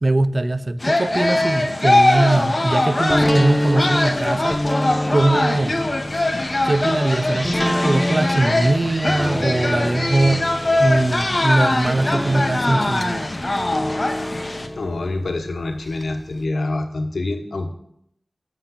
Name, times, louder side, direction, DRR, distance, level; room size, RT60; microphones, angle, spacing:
voice 1, 0.0-4.6 5.1-5.8 6.6-13.3, right 2 dB, 50° right, 14 dB, 0.4 m, -21 dB
sound 1, 0.8-14.7, left 2 dB, 40° left, 0.8 m, -22 dB
sound 2, 3.1-16.0 16.4-16.5, left 1 dB, 10° left, 0.6 m, -27 dB
voice 2, 14.8-17.7, left 2 dB, 90° left, 5 dB, 0.9 m, -26 dB
7.0 x 5.7 x 5.7 m, 0.74 s
wide cardioid pair, 60°, 0 cm